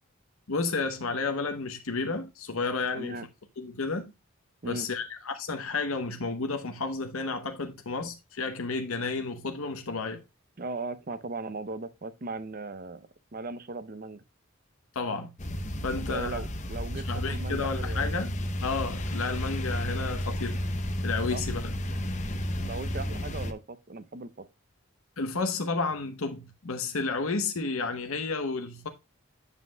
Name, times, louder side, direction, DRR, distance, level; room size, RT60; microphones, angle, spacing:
voice 1, 0.5-3.3 3.6-4.1 4.6-10.2 14.9-15.3 15.8-16.4 17.0-20.6 21.0-21.7 25.2-28.9, left 4 dB, 75° left, 0.9 m, -32 dB
voice 2, 2.9-3.3 4.6-4.9 10.6-14.2 16.0-18.1 21.3-21.4 22.6-24.5, right 3 dB, 40° right, 0.6 m, -38 dB
sound 1, 15.4-23.5, equal, 35° left, 0.8 m, -32 dB
8.2 x 7.5 x 2.2 m
head